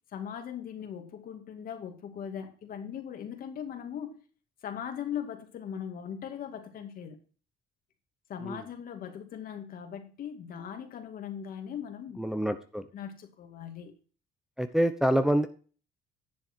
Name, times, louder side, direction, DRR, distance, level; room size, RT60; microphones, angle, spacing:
voice 1, 0.1-4.2 4.6-7.2 8.3-12.2 12.9-13.9, left 8 dB, 60° left, 2.3 m, -39 dB
voice 2, 12.2-12.8 14.6-15.5, right 1 dB, 5° right, 0.9 m, -26 dB
10.5 x 7.2 x 4.5 m
cardioid pair, 110°, 17 cm